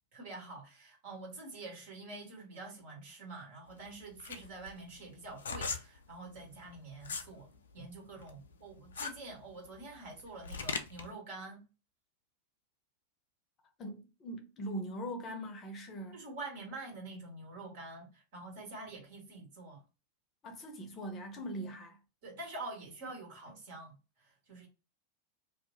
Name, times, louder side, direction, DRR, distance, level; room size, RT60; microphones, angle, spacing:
voice 1, 0.1-11.6 16.1-19.8 22.2-24.7, right 2 dB, 50° right, 1.6 m, -47 dB
sound 1, 3.7-7.3 7.7-11.1, left 5 dB, 65° left, 0.4 m, -40 dB
voice 2, 13.8-16.2 20.4-22.0, right 1 dB, 30° left, 0.7 m, -41 dB
2.6 x 2.2 x 3.9 m
figure-of-eight pair, 90°, 0 cm